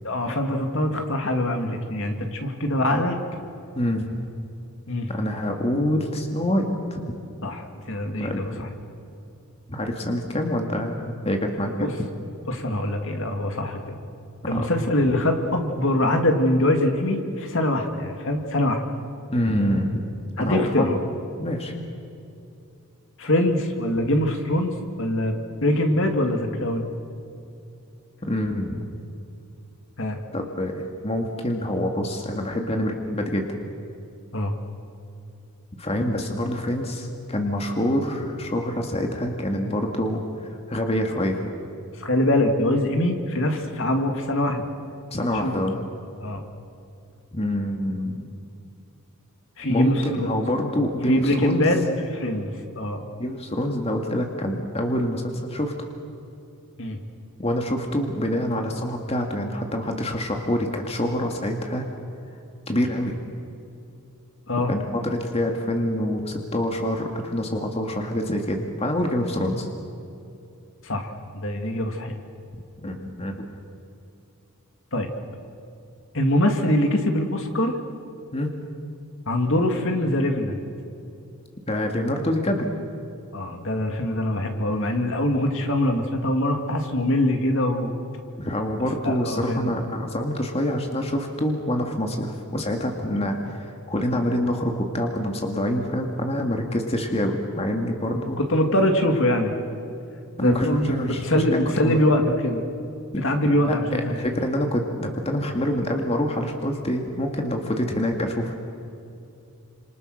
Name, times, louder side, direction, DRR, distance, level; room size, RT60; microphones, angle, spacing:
voice 1, 0.0-3.2 4.9-5.1 7.4-8.7 11.8-11.9 12.5-13.9 14.5-18.8 20.4-21.0 23.2-24.7 25.0-26.9 30.0-30.2 34.3-34.5 42.0-44.6 45.3-45.6 46.2-46.4 49.6-50.3 51.1-51.8 52.1-53.0 56.8-57.0 64.5-64.7 70.8-72.2 74.9-75.1 76.1-77.7 79.3-80.6 83.3-87.9 89.0-89.7 98.4-99.6 100.4-102.7 103.2-104.1, left 1 dB, 60° left, 4 dB, 2.6 m, -23 dB
voice 2, 5.1-7.0 8.2-8.5 9.7-11.9 14.4-14.7 19.3-19.9 20.4-21.0 21.4-21.8 28.2-28.8 30.3-33.6 35.8-41.4 45.1-45.8 47.3-48.3 49.7-51.7 53.2-55.7 57.4-61.9 62.7-63.2 64.7-69.7 72.5-73.5 78.3-78.5 81.7-82.7 88.4-98.4 100.4-101.4 101.8-102.0 103.1-103.2 103.5-108.6, left 1 dB, 25° left, 3 dB, 2.1 m, -26 dB
29.5 x 27.0 x 6.6 m, 2.6 s
head